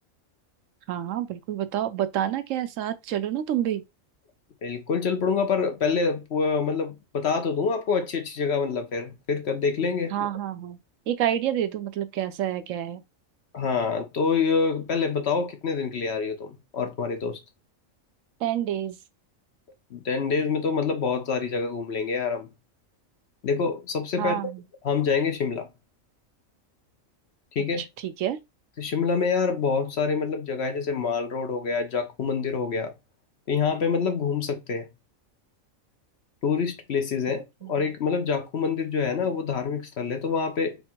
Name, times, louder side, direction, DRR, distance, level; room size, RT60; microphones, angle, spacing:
voice 1, 0.9-3.8 10.1-10.8 11.1-13.0 18.4-19.0 24.2-24.6 27.8-28.4 37.6-37.7, right 11 dB, 75° right, 0.9 m, -28 dB
voice 2, 4.6-10.1 13.5-17.4 19.9-22.5 23.4-24.4 24.8-25.7 27.5-27.8 28.8-32.9 33.5-34.9 36.4-37.4 37.7-40.8, left 5 dB, 55° left, 1.0 m, -26 dB
4.5 x 2.1 x 4.3 m
omnidirectional pair, 1.4 m